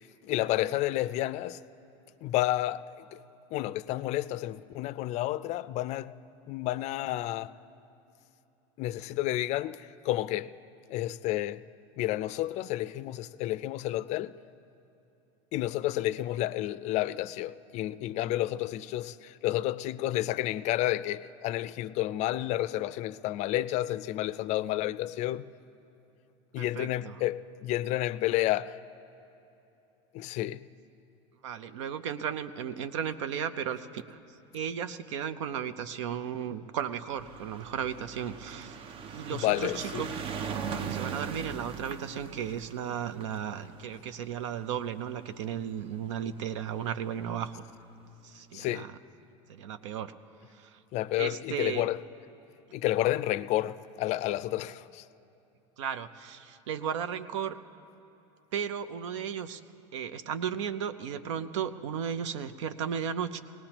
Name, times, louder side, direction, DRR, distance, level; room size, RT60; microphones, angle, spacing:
voice 1, 0.2-1.6 2.2-3.2 3.5-6.2 6.5-7.6 8.8-10.5 10.9-11.6 12.0-14.3 15.5-25.5 26.5-28.8 30.1-30.6 39.3-40.0 48.5-48.9 50.9-52.0 52.7-55.0, left 15 dB, 50° left, 0.4 m, -30 dB
voice 2, 26.5-27.2 31.4-34.2 34.5-40.1 40.7-47.7 48.2-48.9 49.5-50.1 50.5-50.8 51.2-51.9 55.8-57.6 58.5-59.6 59.9-63.4, right 8 dB, 85° right, 0.6 m, -35 dB
sound 1, 37.1-45.6 46.5-46.6 46.8-46.9 47.1-47.2, right 6 dB, 35° right, 0.6 m, -39 dB
20.5 x 18.5 x 3.0 m
supercardioid pair, 115°, 15 cm